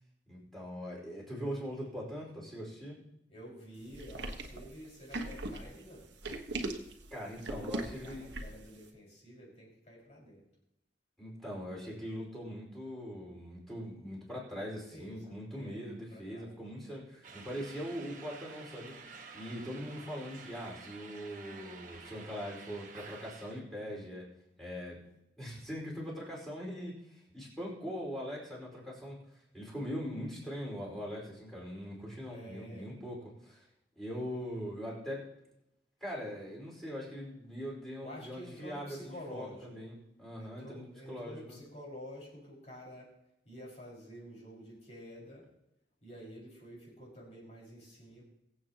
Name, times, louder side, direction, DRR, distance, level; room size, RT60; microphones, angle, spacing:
voice 1, 0.3-3.0 7.1-8.2 11.2-18.9 19.3-24.3 24.6-25.0 25.4-29.2 29.5-33.7 34.0-35.2 36.0-41.6, equal, ahead, -4 dB, 4.7 m, -41 dB
voice 2, 3.3-6.1 7.4-10.4 14.7-16.6 32.3-32.9 38.0-39.7 40.4-43.1 43.5-45.4 46.0-48.2, equal, 35° left, -4 dB, 5.4 m, -50 dB
sound 1, 3.9-8.7, right 2 dB, 80° right, 1.4 m, -39 dB
sound 2, 17.2-23.6, right 4 dB, 45° right, 1.4 m, -50 dB
22.5 x 8.2 x 2.9 m, 0.85 s
head